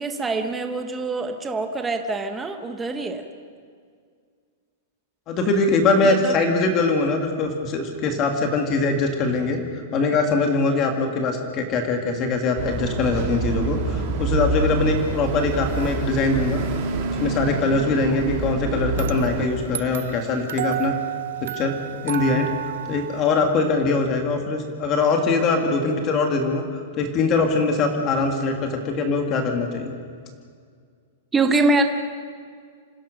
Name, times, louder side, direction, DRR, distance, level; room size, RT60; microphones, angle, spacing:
voice 1, 0.0-3.2 6.0-6.3 17.0-17.1 31.3-31.8, right 3 dB, 10° right, 6 dB, 0.9 m, -24 dB
voice 2, 5.3-9.6 9.9-16.6 17.2-20.9 21.4-21.7 22.0-22.5 22.9-26.6 27.0-30.0, left 3 dB, 25° left, 3 dB, 1.8 m, -22 dB
sound 1, 12.6-19.5, right 3 dB, 40° right, 3.0 m, -26 dB
sound 2, 18.9-23.9, right 12 dB, 65° right, 0.7 m, -32 dB
26.5 x 16.0 x 6.4 m, 2.1 s
supercardioid pair, 175°, 0 cm